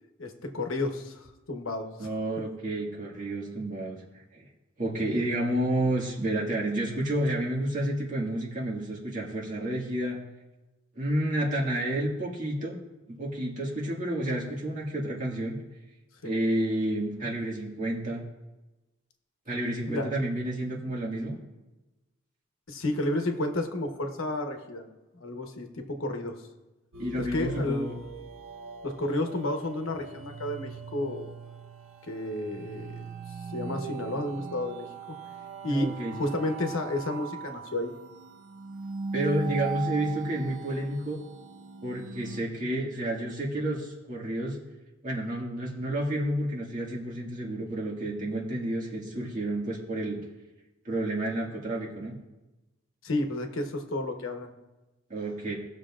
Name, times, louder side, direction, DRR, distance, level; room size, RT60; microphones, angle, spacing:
voice 1, 0.2-2.1 16.2-16.3 19.9-20.1 22.7-24.9 25.2-26.3 27.2-27.9 28.8-31.3 32.0-33.1 33.5-34.9 35.6-37.9 53.0-54.5, left 1 dB, 75° left, 4 dB, 1.1 m, -31 dB
voice 2, 2.0-4.0 4.3-4.4 4.8-10.2 11.0-12.8 13.1-15.6 16.2-18.2 19.5-21.4 27.0-27.9 35.6-36.2 39.1-41.2 41.8-44.6 45.0-50.2 50.9-52.2 55.1-55.5, right 1 dB, 40° right, -4 dB, 1.9 m, -30 dB
sound 1, 26.9-42.4, right 5 dB, 80° right, 0.8 m, -40 dB
18.5 x 6.5 x 2.5 m, 1.1 s
head